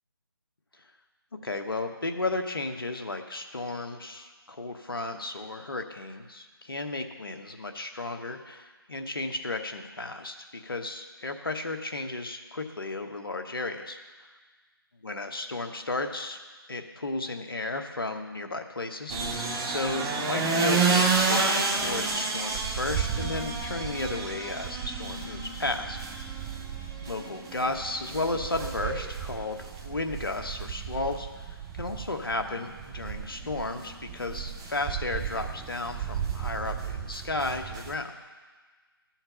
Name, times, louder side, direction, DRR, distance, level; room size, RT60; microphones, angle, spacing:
voice 1, 1.4-14.3 15.0-16.4 16.7-26.0 26.3-26.4 27.1-38.1, left 2 dB, 65° left, 5 dB, 1.0 m, -34 dB
sound 1, 19.1-38.0, right 4 dB, 15° right, 0.6 m, -31 dB
13.0 x 4.5 x 6.9 m, 1.4 s
figure-of-eight pair, 155°, 13 cm